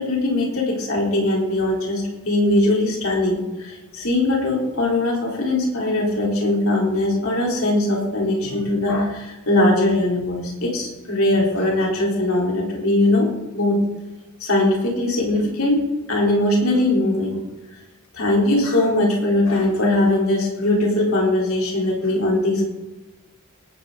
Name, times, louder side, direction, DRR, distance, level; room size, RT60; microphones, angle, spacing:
voice 1, 0.0-13.8 14.4-17.4 18.1-22.7, left 1 dB, 70° left, -2 dB, 4.0 m, -20 dB
18.5 x 10.0 x 4.0 m, 1.1 s
head